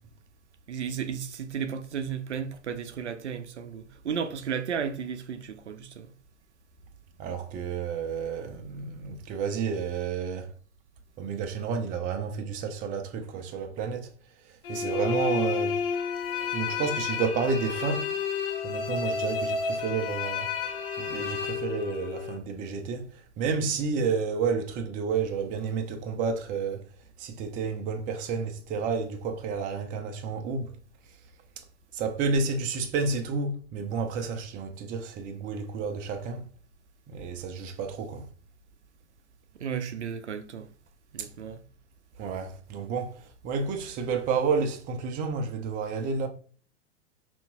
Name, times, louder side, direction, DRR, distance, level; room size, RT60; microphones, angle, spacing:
voice 1, 0.7-6.1 39.6-40.7 41.1-41.6, right 7 dB, 75° right, 0.5 m, -34 dB
voice 2, 7.2-10.5 11.2-14.1 14.4-15.8 16.5-18.1 18.6-26.8 27.2-30.8 31.6-31.7 31.9-36.5 37.1-38.3 41.2-41.3 42.2-46.3, right 5 dB, 25° right, 0.5 m, -31 dB
sound 1, 14.6-22.4, left 5 dB, 50° left, 0.7 m, -31 dB
5.4 x 2.5 x 2.2 m
figure-of-eight pair, 95°, 35 cm